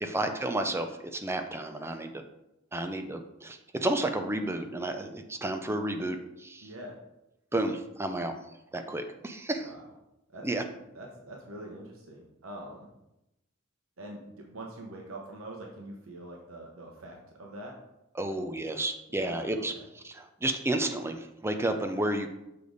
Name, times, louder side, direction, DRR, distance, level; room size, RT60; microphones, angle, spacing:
voice 1, 0.0-2.2 2.7-6.7 7.5-8.3 8.7-9.7 10.4-10.6 18.2-19.7 20.0-22.3, right 1 dB, 10° right, 6 dB, 0.5 m, -31 dB
voice 2, 6.6-7.0 9.6-9.9 10.3-10.5 10.9-12.9 14.0-17.7 18.3-18.4 19.1-19.9, right 1 dB, 80° right, -1 dB, 1.1 m, -44 dB
6.8 x 5.0 x 3.9 m, 0.90 s
head